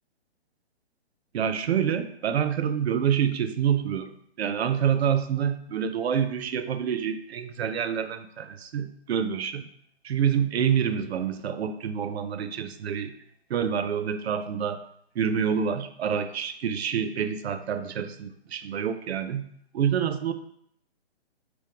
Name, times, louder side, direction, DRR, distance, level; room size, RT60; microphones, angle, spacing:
voice 1, 1.3-9.7 10.0-13.1 13.5-14.8 15.2-19.5 19.7-20.3, right 8 dB, 70° right, 10 dB, 0.5 m, -27 dB
3.4 x 3.0 x 4.7 m, 0.68 s
hypercardioid pair, 165°, 33 cm